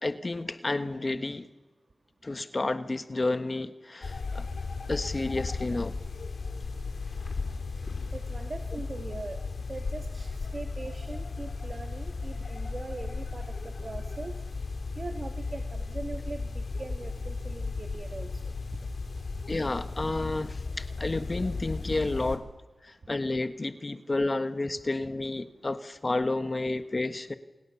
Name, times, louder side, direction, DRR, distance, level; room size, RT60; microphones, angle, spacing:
voice 1, 0.0-1.5 2.2-4.5 4.9-6.0 19.5-22.5 22.8-27.3, left 2 dB, 40° left, 10 dB, 1.4 m, -31 dB
sound 1, 4.0-22.4, left 3 dB, 75° left, 3.3 m, -35 dB
voice 2, 8.1-9.4 9.7-14.3 15.0-18.3, right 3 dB, 55° right, 7 dB, 1.8 m, -41 dB
28.5 x 28.0 x 7.1 m, 1.1 s
cardioid pair, 50°, 0 cm